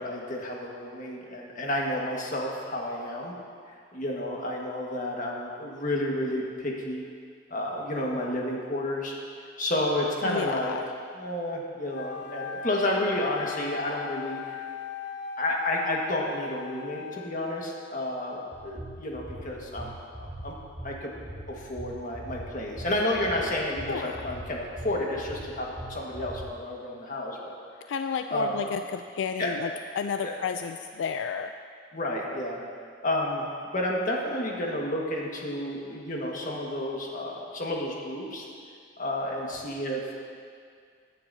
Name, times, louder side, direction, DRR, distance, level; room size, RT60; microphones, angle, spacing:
voice 1, 0.0-3.3 3.7-7.0 7.5-9.1 9.6-10.7 11.1-14.6 15.4-19.9 20.2-20.5 20.8-21.1 21.5-27.5 28.3-28.6 29.4-29.5 30.2-30.3 31.9-32.6 33.0-33.5 33.7-38.4 39.0-40.1, left 1 dB, 45° left, -2 dB, 1.6 m, -31 dB
voice 2, 10.2-10.8 23.9-24.2 27.9-31.5, left 6 dB, 80° left, 8 dB, 0.3 m, -32 dB
Wind instrument woodwind instrument, 11.9-17.8, left 5 dB, 65° left, 0.9 m, -38 dB
sound 1, 18.5-26.5, right 1 dB, 5° right, 0.9 m, -41 dB
17.0 x 9.8 x 2.7 m, 2.1 s
head